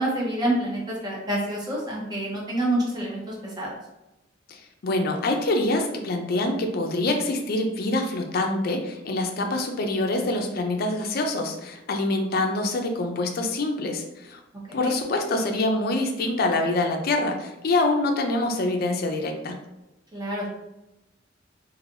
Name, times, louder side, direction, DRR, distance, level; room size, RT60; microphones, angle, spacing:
voice 1, 0.0-3.7 14.7-14.9 20.1-20.5, right 1 dB, 20° right, -4 dB, 0.8 m, -27 dB
voice 2, 4.5-14.4 14.7-19.6, left 2 dB, 50° left, 4 dB, 0.4 m, -25 dB
3.2 x 2.6 x 2.5 m, 0.94 s
head